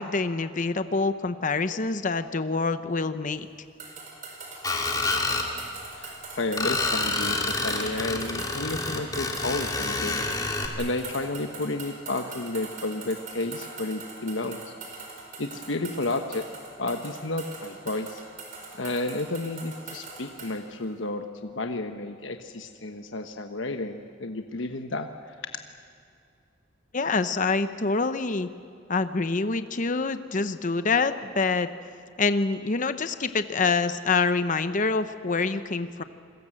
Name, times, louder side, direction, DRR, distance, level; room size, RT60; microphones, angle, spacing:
voice 1, 0.0-3.5 26.9-28.5 28.9-31.7 32.2-36.0, left 4 dB, 40° left, 10 dB, 0.8 m, -26 dB
sound 1, 3.8-20.6, right 4 dB, 40° right, 4.9 m, -42 dB
Screech, 4.6-5.5 6.6-10.7, left 3 dB, 20° left, 2.6 m, -28 dB
voice 2, 5.9-10.2 10.8-14.7 15.4-16.4 16.8-18.2 18.8-25.3, left 2 dB, 75° left, 6 dB, 1.2 m, -32 dB
28.5 x 21.5 x 7.8 m, 2.5 s
head